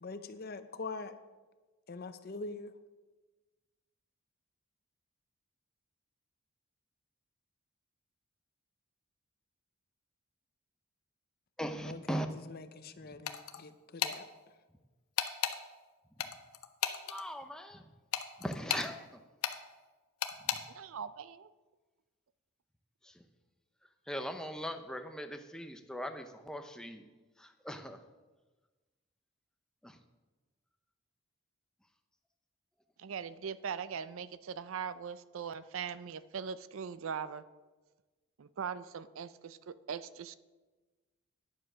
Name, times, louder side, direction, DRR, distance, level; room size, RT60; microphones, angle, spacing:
voice 1, 0.0-1.1 1.9-2.7 11.9-14.2, left 3 dB, 45° left, 11 dB, 0.6 m, -44 dB
voice 2, 11.6-12.3 17.1-17.8 18.4-19.0 24.1-27.0 27.4-28.0 29.8-30.0, equal, 5° left, 6 dB, 0.6 m, -39 dB
sound 1, 13.3-13.6 14.0-14.2 15.2-15.6 16.2-17.2 18.1-18.9 19.4-19.6 20.2-20.6, left 9 dB, 85° left, 0.8 m, -33 dB
voice 3, 20.7-21.5 33.0-37.4 38.4-40.3, right 7 dB, 65° right, 15 dB, 0.4 m, -40 dB
10.0 x 7.4 x 6.2 m, 1.2 s
head